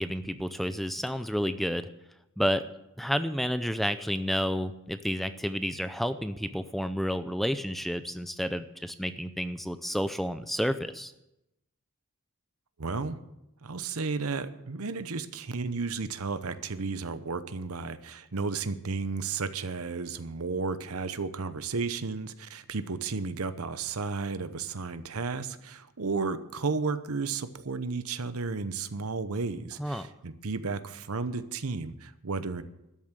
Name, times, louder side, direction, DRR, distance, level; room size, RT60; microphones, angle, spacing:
voice 1, 0.0-1.9 2.4-2.7 3.0-11.1 29.8-30.1, equal, ahead, 11 dB, 0.4 m, -30 dB
voice 2, 12.8-13.2 13.6-32.6, right 4 dB, 75° right, 12 dB, 0.9 m, -33 dB
12.5 x 7.2 x 9.0 m, 0.88 s
head